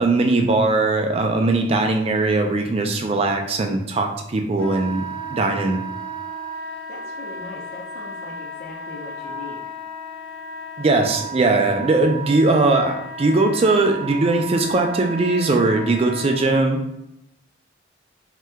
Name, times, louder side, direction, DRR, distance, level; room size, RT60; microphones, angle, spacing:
voice 1, 0.0-5.0 5.3-5.8 10.8-16.8, right 2 dB, 30° right, 4 dB, 0.3 m, -20 dB
Wind instrument woodwind instrument, 4.6-16.4, right 1 dB, 70° left, 1.4 m, -34 dB
voice 2, 6.9-9.6, left 2 dB, 50° left, -5 dB, 0.5 m, -39 dB
2.8 x 2.3 x 3.3 m, 0.81 s
head